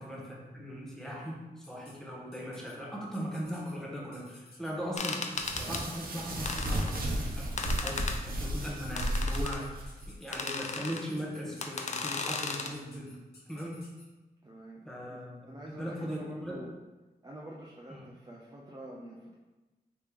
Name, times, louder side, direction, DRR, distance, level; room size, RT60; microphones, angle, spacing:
voice 1, 0.0-13.2 13.5-13.8 14.8-16.6 17.9-18.1, equal, 5° left, -4 dB, 0.9 m, -39 dB
sound 1, 1.6-1.9 2.3-2.7 3.1-3.7 4.1-4.7 5.2-6.2 6.7-7.5 7.8-8.1 8.4-14.0, left 3 dB, 70° left, 0.8 m, -56 dB
sound 2, 5.0-5.8 6.5-7.0 7.6-8.2 9.0-9.6 10.3-11.0 11.6-12.7, left 4 dB, 45° left, 0.4 m, -35 dB
sound 3, 5.3-10.1, right 1 dB, 60° right, 0.7 m, -33 dB
voice 2, 14.4-16.7 17.2-19.3, right 1 dB, 25° right, -4 dB, 0.5 m, -47 dB
3.3 x 2.9 x 3.4 m, 1.1 s
wide cardioid pair, 80°, 17 cm